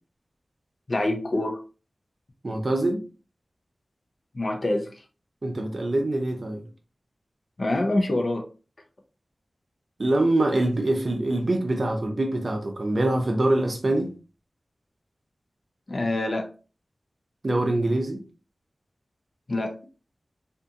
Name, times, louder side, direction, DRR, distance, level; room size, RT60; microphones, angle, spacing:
voice 1, 0.9-1.6 4.3-4.9 7.6-8.5 15.9-16.5 19.5-19.7, left 2 dB, 50° left, 0.6 m, -25 dB
voice 2, 2.4-3.0 5.4-6.6 10.0-14.1 17.4-18.2, right 1 dB, 55° right, 0.7 m, -24 dB
2.7 x 2.5 x 2.4 m
wide cardioid pair, 65°, 0 cm